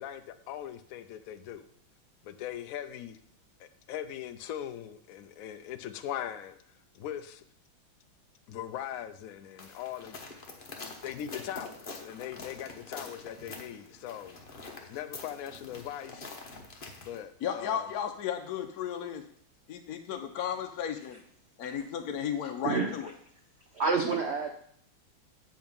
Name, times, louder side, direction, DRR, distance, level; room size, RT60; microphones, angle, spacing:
voice 1, 0.0-1.7 2.2-3.2 3.6-6.6 6.9-7.4 8.5-16.4 17.0-17.9, left 10 dB, 85° left, 10 dB, 0.7 m, -40 dB
sound 1, 9.6-17.2, left 3 dB, 35° left, 0.9 m, -45 dB
voice 2, 17.4-19.2 19.7-21.2 21.6-23.1, left 8 dB, 65° left, 5 dB, 1.0 m, -34 dB
voice 3, 22.4-22.9 23.7-24.5, right 4 dB, 60° right, 3 dB, 0.6 m, -29 dB
8.1 x 5.2 x 5.3 m, 0.65 s
omnidirectional pair, 2.1 m